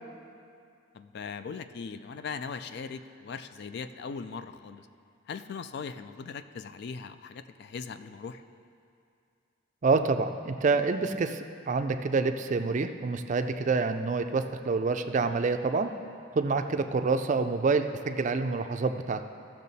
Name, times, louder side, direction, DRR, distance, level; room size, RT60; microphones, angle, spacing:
voice 1, 0.9-4.9 5.3-8.4, left 5 dB, 55° left, 11 dB, 0.3 m, -39 dB
voice 2, 9.8-15.9 16.3-19.2, right 4 dB, 35° right, 8 dB, 0.4 m, -27 dB
15.0 x 6.5 x 4.1 m, 2.4 s
head